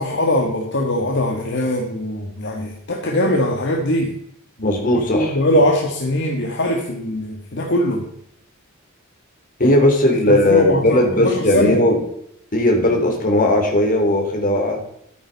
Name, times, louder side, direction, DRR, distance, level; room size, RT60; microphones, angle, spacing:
voice 1, 0.0-4.1 4.6-4.8 5.1-8.0 9.6-9.8 10.3-11.8, left 1 dB, 60° left, 1 dB, 1.7 m, -21 dB
voice 2, 4.6-5.4 9.6-12.0 12.5-14.8, left 1 dB, 40° left, 2 dB, 3.3 m, -17 dB
13.0 x 9.4 x 4.1 m, 0.70 s
head